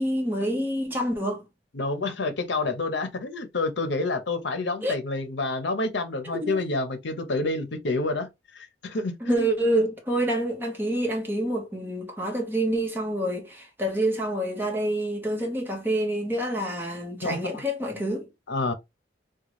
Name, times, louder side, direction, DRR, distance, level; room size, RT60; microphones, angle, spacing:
voice 1, 0.0-1.4 4.8-5.0 6.2-6.7 9.2-18.3, right 1 dB, 10° right, 1.0 m, -27 dB
voice 2, 1.7-9.5 17.2-17.6 18.5-18.7, left 3 dB, 70° left, 0.7 m, -28 dB
3.7 x 2.3 x 3.0 m
head